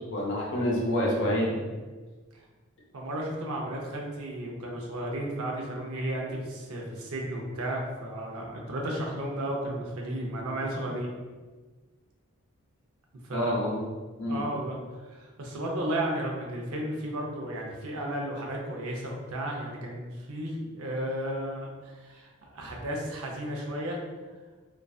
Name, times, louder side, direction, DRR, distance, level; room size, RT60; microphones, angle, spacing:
voice 1, 0.1-1.6 13.3-13.8 14.2-14.4, equal, 55° left, -2 dB, 0.5 m, -27 dB
voice 2, 2.9-11.1 13.2-13.5 14.3-14.8 15.0-24.0, right 1 dB, 85° right, -1 dB, 0.5 m, -33 dB
2.5 x 2.3 x 2.3 m, 1.3 s
head